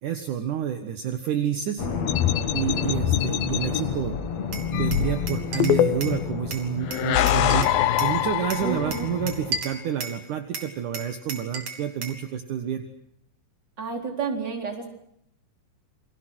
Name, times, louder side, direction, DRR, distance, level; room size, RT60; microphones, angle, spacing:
voice 1, 0.0-1.9 2.5-4.2 4.7-7.7 8.0-12.8, right 9 dB, 65° right, 7 dB, 2.8 m, -29 dB
sound 1, 1.8-9.6, left 7 dB, 50° left, 3.3 m, -31 dB
sound 2, 2.1-3.8 4.7-6.3 6.9-9.0, left 11 dB, 80° left, 2.8 m, -24 dB
Glass, 4.5-6.2 6.5-8.2 8.5-10.2 10.5-12.2, right 4 dB, 50° right, 3.9 m, -35 dB
voice 2, 8.6-9.1 13.8-14.9, right 5 dB, 30° right, 3 dB, 4.4 m, -30 dB
29.0 x 23.5 x 6.3 m, 0.73 s
omnidirectional pair, 4.1 m